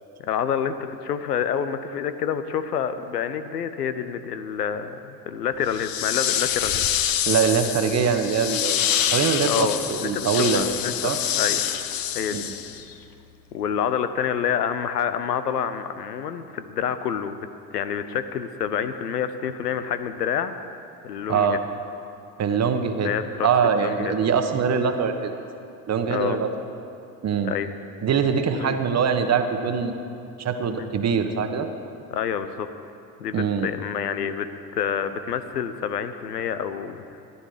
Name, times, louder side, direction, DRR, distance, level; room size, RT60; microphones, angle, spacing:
voice 1, 0.2-6.8 9.4-11.6 12.1-12.4 13.5-17.5 17.7-20.5 21.0-21.6 23.0-23.5 23.8-24.2 26.1-26.4 27.4-27.7 28.6-28.8 30.8-30.9 32.1-32.7 33.2-37.2, left 8 dB, 85° left, 11 dB, 0.7 m, -28 dB
sound 1, 5.7-12.9, left 10 dB, 45° left, 0.9 m, -26 dB
voice 2, 7.3-8.9 9.1-10.7 11.0-11.2 12.3-12.5 21.3-21.6 22.4-23.1 23.4-25.3 25.9-26.5 27.2-27.5 28.0-29.9 30.4-31.7 33.3-33.7, right 6 dB, 35° right, 7 dB, 1.2 m, -23 dB
14.0 x 11.5 x 5.0 m, 2.7 s
hypercardioid pair, 70°, 46 cm